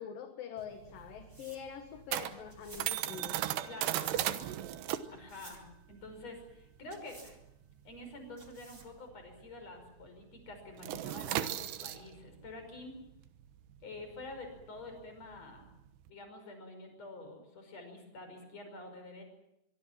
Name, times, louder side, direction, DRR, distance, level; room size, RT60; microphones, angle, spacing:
voice 1, 0.0-3.4, left 8 dB, 60° left, 6 dB, 3.0 m, -44 dB
sound 1, 0.6-9.6 9.8-10.1 10.4-16.1, right 13 dB, 75° right, 3.2 m, -37 dB
sound 2, 0.7-9.1, right 2 dB, 20° right, 1.5 m, -57 dB
voice 2, 3.6-4.4 5.1-7.4 7.8-13.0 13.8-15.7 16.1-19.2, left 2 dB, 35° left, 6 dB, 6.5 m, -48 dB
24.0 x 23.5 x 7.4 m, 0.83 s
omnidirectional pair, 5.0 m